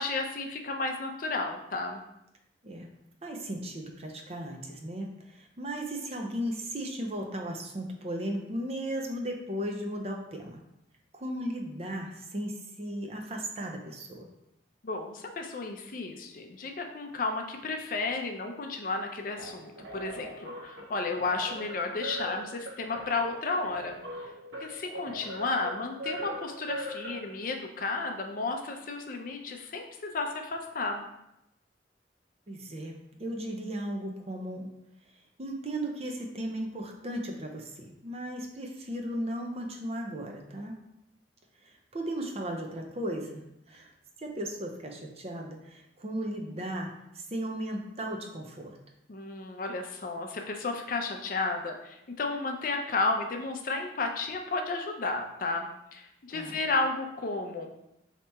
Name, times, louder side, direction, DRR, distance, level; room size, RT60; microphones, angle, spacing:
voice 1, 0.0-2.0 14.8-24.0 24.6-31.0 49.1-57.7, left 3 dB, 50° left, 4 dB, 0.5 m, -33 dB
voice 2, 3.2-10.6 11.1-14.3 32.5-34.7 35.4-40.8 41.6-43.9 44.2-48.8 56.3-56.6, right 1 dB, 35° right, 2 dB, 0.5 m, -36 dB
sound 1, 19.4-27.6, right 1 dB, 75° right, 0.8 m, -41 dB
4.2 x 2.8 x 3.4 m, 0.83 s
head